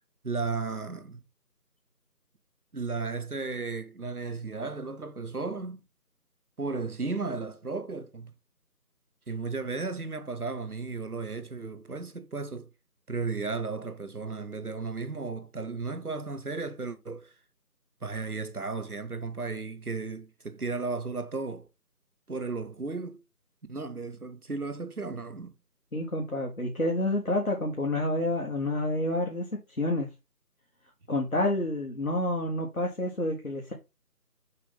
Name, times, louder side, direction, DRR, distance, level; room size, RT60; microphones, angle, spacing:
voice 1, 0.2-1.2 2.7-5.8 6.6-8.3 9.3-12.7 13.1-17.3 18.0-21.7 22.3-23.2 23.7-25.5, right 4 dB, 65° right, 1.1 m, -34 dB
voice 2, 25.9-30.1 31.1-33.7, left 1 dB, 55° left, 1.7 m, -29 dB
6.7 x 3.4 x 5.4 m
figure-of-eight pair, 170°, 48 cm